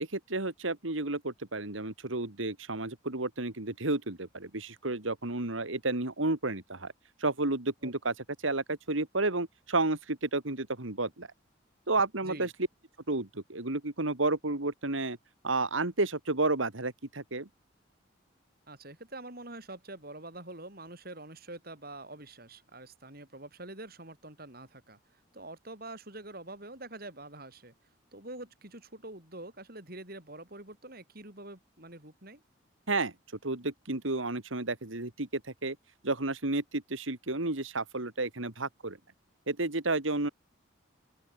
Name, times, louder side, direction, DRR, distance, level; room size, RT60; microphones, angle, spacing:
voice 1, 0.1-6.9 7.2-8.1 8.4-11.3 11.9-12.5 13.1-15.2 15.4-17.5 32.9-33.1 33.4-35.8 36.0-39.0 39.5-40.3, right 2 dB, 85° right, 2.6 m, -31 dB
voice 2, 18.7-25.0 25.3-27.7 28.1-32.4, right 2 dB, 50° right, 6.3 m, -45 dB
open air
head